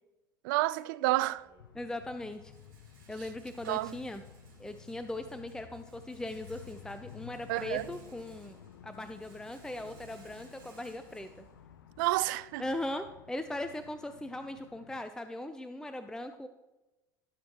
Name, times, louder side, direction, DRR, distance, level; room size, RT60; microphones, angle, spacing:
voice 1, 0.4-1.4 3.7-4.0 7.5-7.9 12.0-12.6, right 18 dB, 65° right, 0.4 m, -29 dB
Rattle, 1.1-12.2, right 3 dB, 85° right, 3.8 m, -62 dB
sound 1, 1.6-15.0, left 9 dB, 80° left, 0.6 m, -53 dB
voice 2, 1.7-2.5 3.1-4.2 4.6-8.6 8.8-11.4 12.6-16.5, left 1 dB, 5° left, 0.6 m, -39 dB
16.0 x 6.4 x 2.9 m
hypercardioid pair, 75°, 11 cm